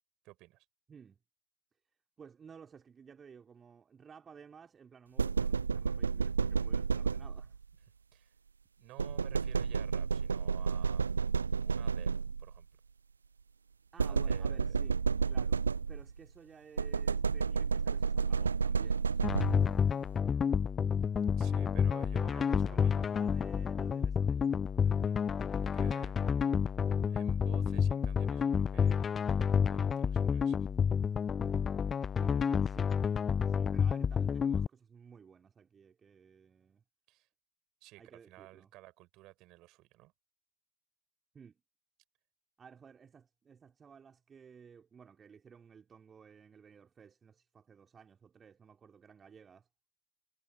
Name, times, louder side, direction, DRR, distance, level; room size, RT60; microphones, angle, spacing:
voice 1, 0.2-0.6 8.1-8.3 8.8-11.2 11.6-12.7 14.0-14.8 21.4-23.0 25.0-25.2 25.7-26.5 27.1-30.6 37.1-37.3 37.8-40.1, right 19 dB, 40° right, 5.2 m, -54 dB
voice 2, 0.9-1.2 2.2-7.6 13.9-15.0 15.3-20.3 22.3-25.0 32.1-32.9 33.5-36.8 38.0-38.7 41.3-41.6 42.6-49.7, right 6 dB, 20° right, 3.4 m, -56 dB
sound 1, 5.2-7.6 9.0-12.6 14.0-16.2 16.8-19.8, right 5 dB, 75° right, 0.4 m, -31 dB
sound 2, 19.2-34.7, left 7 dB, 20° left, 0.3 m, -30 dB
figure-of-eight pair, 90°, 0 cm